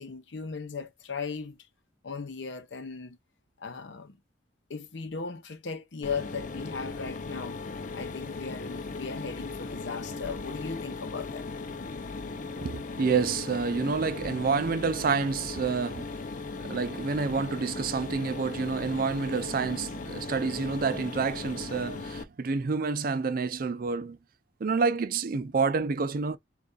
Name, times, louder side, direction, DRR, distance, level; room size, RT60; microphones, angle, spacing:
voice 1, 0.0-1.6 2.0-3.2 3.6-4.2 4.7-7.6 7.9-11.4, left 5 dB, 80° left, 0.8 m, -37 dB
Mechanisms, 6.0-22.2, left 3 dB, 45° left, 0.5 m, -38 dB
voice 2, 12.6-16.1 16.6-24.2 24.6-26.4, right 4 dB, 50° right, 0.4 m, -28 dB
3.3 x 2.4 x 3.9 m
head